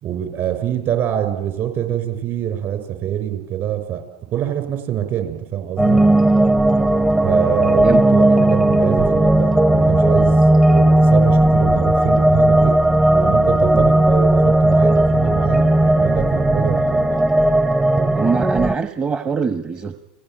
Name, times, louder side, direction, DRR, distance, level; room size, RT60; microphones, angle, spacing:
voice 1, 0.0-4.0 4.3-6.0 7.2-10.4 10.6-12.8 13.2-17.1, right 10 dB, 50° right, 9 dB, 5.8 m, -24 dB
sound 1, 5.8-18.8, right 1 dB, 10° right, 0.8 m, -15 dB
voice 2, 18.1-19.9, right 5 dB, 25° right, 8 dB, 1.3 m, -23 dB
30.0 x 18.0 x 9.1 m, 1.1 s
hypercardioid pair, 100°, 5 cm